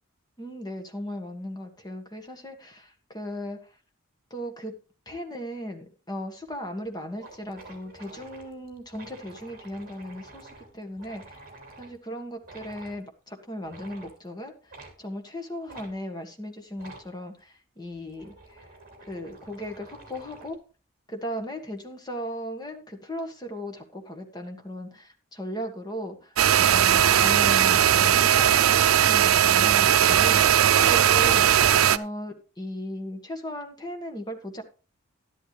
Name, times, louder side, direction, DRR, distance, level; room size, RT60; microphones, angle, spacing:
voice 1, 0.4-3.8 4.3-4.7 5.0-11.5 11.8-18.8 19.0-20.6 21.1-34.6, equal, 20° left, 4 dB, 1.6 m, -37 dB
sound 1, 6.5-6.6 6.9-7.0 7.1-12.0 12.4-13.0 13.6-14.2 14.7-15.0 15.7-15.9 16.7-17.1 17.9-20.6, right 2 dB, 40° right, 3.2 m, -48 dB
sound 2, 26.4-32.0, right 9 dB, 85° right, 0.5 m, -19 dB
12.0 x 11.0 x 3.3 m, 0.35 s
head